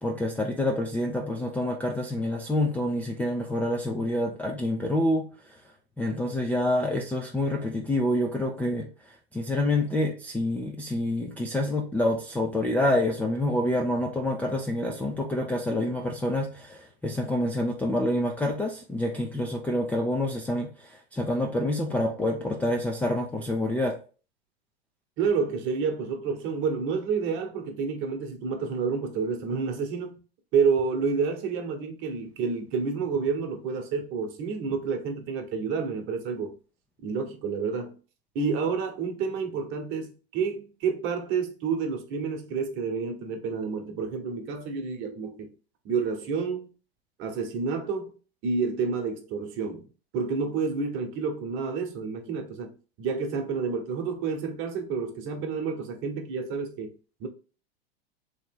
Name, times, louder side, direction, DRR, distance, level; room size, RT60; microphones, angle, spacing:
voice 1, 0.0-5.5 6.0-8.9 9.3-24.0, left 1 dB, 5° left, 0.4 m, -27 dB
voice 2, 25.2-30.2 30.5-36.6 37.0-38.0 38.3-45.5 45.8-46.7 47.2-48.1 48.4-49.9 50.1-52.7 53.0-56.9 57.2-57.3, right 5 dB, 40° right, 1.1 m, -29 dB
3.2 x 3.0 x 4.5 m
hypercardioid pair, 110°, 31 cm